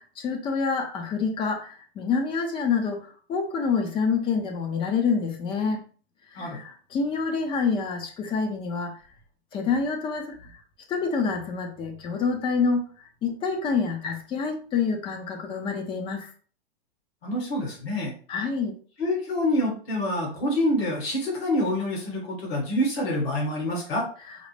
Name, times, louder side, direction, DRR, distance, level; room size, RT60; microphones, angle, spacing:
voice 1, 0.0-5.8 6.3-9.0 9.5-10.6 10.9-16.3 18.3-18.8, left 5 dB, 15° left, 5 dB, 0.5 m, -27 dB
voice 2, 17.2-18.1 19.0-24.1, left 1 dB, 65° left, -1 dB, 1.8 m, -26 dB
5.0 x 2.1 x 3.2 m, 0.42 s
hypercardioid pair, 140°, 33 cm